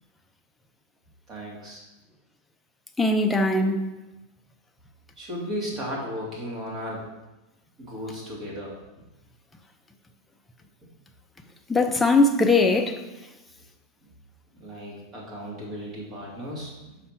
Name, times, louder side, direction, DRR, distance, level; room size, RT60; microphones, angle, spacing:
voice 1, 1.3-1.8 5.2-7.0 7.8-8.7 14.0-14.1 14.6-17.0, equal, 30° right, 2.4 m, -35 dB
voice 2, 3.0-3.9 11.7-13.0, left 2 dB, 5° left, 0.6 m, -20 dB
5.4 x 5.0 x 5.8 m
supercardioid pair, 150°, 0 cm